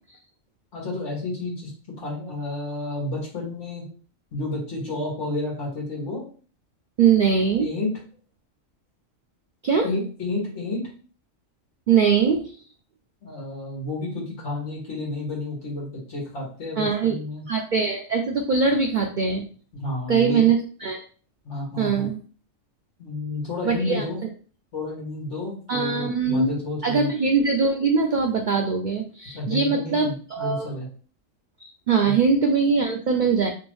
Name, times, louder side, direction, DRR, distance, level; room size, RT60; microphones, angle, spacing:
voice 1, 0.7-1.7 2.0-3.8 4.3-6.3 7.6-7.9 9.8-10.9 13.2-17.5 19.8-20.4 21.4-22.1 23.0-24.2 24.7-27.1 29.3-30.9 32.0-32.1, left 2 dB, 60° left, -5 dB, 2.0 m, -31 dB
voice 2, 7.0-7.7 9.6-9.9 11.9-12.5 16.8-17.2 17.5-19.4 20.1-21.0 21.8-22.2 23.6-24.1 25.7-26.5 26.8-30.8 31.6-33.5, right 5 dB, 85° right, 2 dB, 0.4 m, -22 dB
3.4 x 3.0 x 3.1 m, 0.40 s
omnidirectional pair, 1.4 m